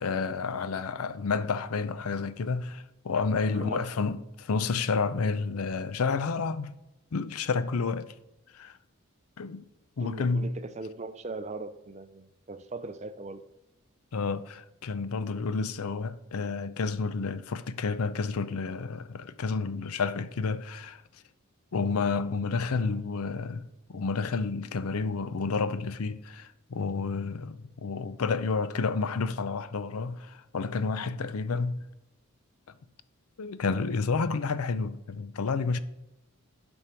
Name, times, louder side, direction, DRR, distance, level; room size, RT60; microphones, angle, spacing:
voice 1, 0.0-6.8 7.1-8.1 8.5-8.8 9.4-9.6 10.0-10.5 14.1-21.0 21.7-31.8 33.4-35.8, left 4 dB, 80° left, 0.5 m, -30 dB
voice 2, 3.5-3.9 10.0-13.5 22.8-23.0, right 3 dB, 30° right, 0.4 m, -40 dB
11.5 x 5.4 x 4.4 m
head